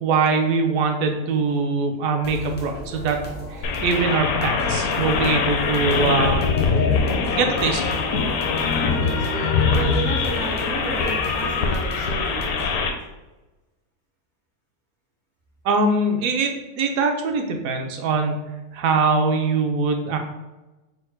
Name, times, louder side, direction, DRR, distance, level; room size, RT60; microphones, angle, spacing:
voice 1, 0.0-3.2 3.5-6.4 7.3-8.0 15.6-16.5 16.8-18.5 18.7-20.2, right 4 dB, 70° right, 4 dB, 1.0 m, -22 dB
sound 1, 2.2-12.9, equal, 15° left, 0.4 m, -37 dB
sound 2, 3.6-12.9, left 5 dB, 75° left, 1.0 m, -23 dB
voice 2, 8.8-12.6, right 2 dB, 50° right, -3 dB, 0.5 m, -32 dB
4.3 x 2.1 x 4.5 m, 1.1 s
omnidirectional pair, 1.6 m